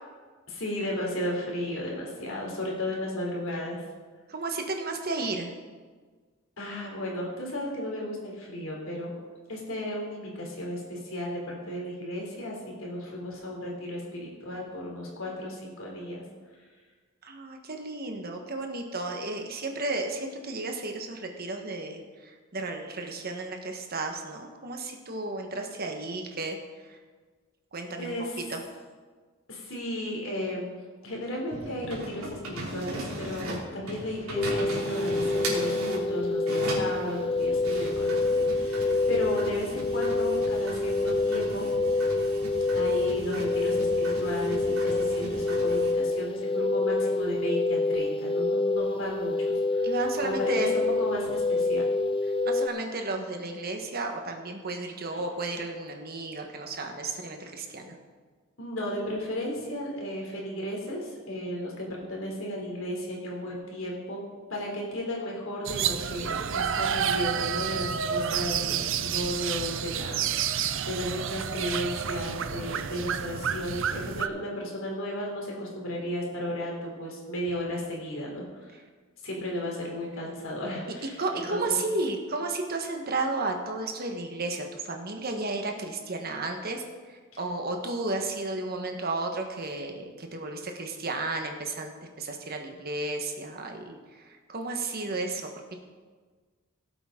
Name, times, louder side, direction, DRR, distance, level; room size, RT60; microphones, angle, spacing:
voice 1, 0.5-3.8 6.6-9.1 9.5-16.2 16.6-16.7 28.0-28.4 29.5-41.7 42.7-49.9 50.2-51.9 55.1-55.2 58.6-64.2 64.5-78.7 79.2-81.8, left 1 dB, 65° left, -2 dB, 3.3 m, -34 dB
voice 2, 4.3-5.5 17.2-27.0 27.7-28.1 28.5-28.6 49.8-50.8 52.3-58.0 78.7-78.8 81.2-95.8, right 2 dB, 45° right, 3 dB, 1.4 m, -33 dB
sound 1, 31.5-36.1 36.4-45.9, right 1 dB, 90° right, 3.1 m, -38 dB
Serene Crystal Singing Bowls, 34.4-52.7, left 3 dB, 25° left, 0.3 m, -27 dB
sound 2, 65.7-74.3, right 8 dB, 60° right, 0.5 m, -30 dB
18.0 x 7.9 x 3.8 m, 1.5 s
head